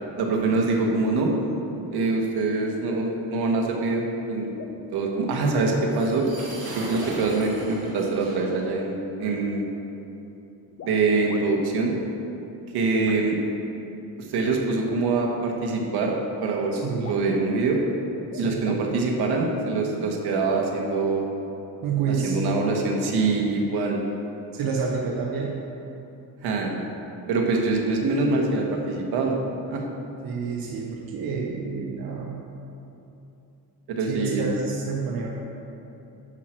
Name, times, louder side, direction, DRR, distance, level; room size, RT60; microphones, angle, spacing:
voice 1, 0.2-1.3 1.9-4.5 4.9-6.3 6.6-9.7 10.8-12.0 12.7-13.4 14.2-16.1 16.4-17.8 18.4-21.2 22.1-24.0 26.4-26.8 27.3-29.4 29.7-29.8 33.9-34.5, right 3 dB, 80° right, 0 dB, 1.4 m, -24 dB
sound 1, 4.2-4.3 4.6-4.9 6.0-6.1 6.8-7.7 8.4-8.7 10.7-11.4 13.1-13.2 14.5-14.6 15.8-15.9 16.3-16.4 16.6-16.7 16.9-17.3 18.2-18.9 19.2-19.4, left 6 dB, 45° left, 0.6 m, -42 dB
sound 2, 5.8-8.7, right 1 dB, 40° right, 1.6 m, -39 dB
voice 2, 16.7-17.1 18.3-18.8 21.8-22.4 24.5-25.6 30.2-32.4 34.1-35.3, right 5 dB, 65° right, -2 dB, 1.0 m, -29 dB
10.5 x 4.5 x 6.2 m, 2.9 s
cardioid pair, 165°, 38 cm